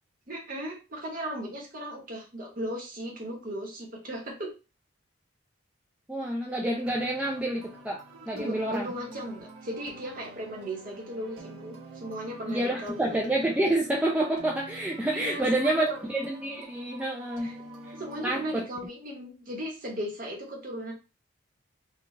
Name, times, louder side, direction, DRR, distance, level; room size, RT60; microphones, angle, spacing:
voice 1, 0.3-4.5 8.1-13.3 15.1-16.1 17.4-17.5 17.9-20.9, equal, 45° right, -1 dB, 1.1 m, -37 dB
voice 2, 6.1-8.0 8.3-8.9 12.5-17.5 18.2-18.6, right 1 dB, 5° right, -1 dB, 0.3 m, -28 dB
sound 1, 6.8-18.7, right 2 dB, 85° right, 0.9 m, -47 dB
3.9 x 2.3 x 3.2 m, 0.31 s
head